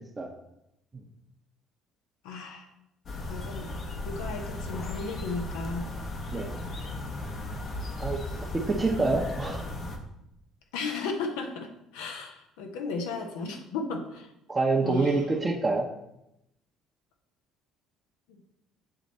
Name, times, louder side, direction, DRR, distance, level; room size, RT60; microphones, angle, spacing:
voice 1, 2.2-2.7 3.3-3.8 4.0-5.8 10.7-14.3 14.8-15.2 18.3-18.4, left 4 dB, 80° left, 4 dB, 0.8 m, -35 dB
sound 1, 3.0-10.0, left 2 dB, 50° left, 1.0 m, -36 dB
voice 2, 8.5-9.7 14.5-15.9, right 3 dB, 30° right, -3 dB, 0.8 m, -26 dB
7.6 x 3.1 x 4.1 m, 0.84 s
hypercardioid pair, 65°, 0 cm